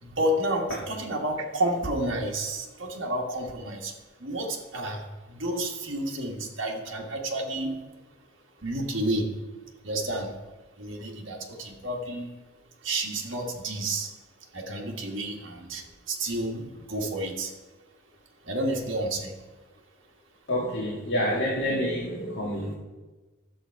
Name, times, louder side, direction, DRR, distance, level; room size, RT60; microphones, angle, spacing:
voice 1, 0.0-3.9 4.2-7.9 8.6-9.3 9.8-10.3 10.8-12.4 12.8-14.1 14.5-17.5 18.4-19.3, right 1 dB, 60° right, 0 dB, 1.5 m, -30 dB
voice 2, 20.5-22.7, equal, 55° left, -5 dB, 1.8 m, -28 dB
10.0 x 7.4 x 4.6 m, 1.2 s
head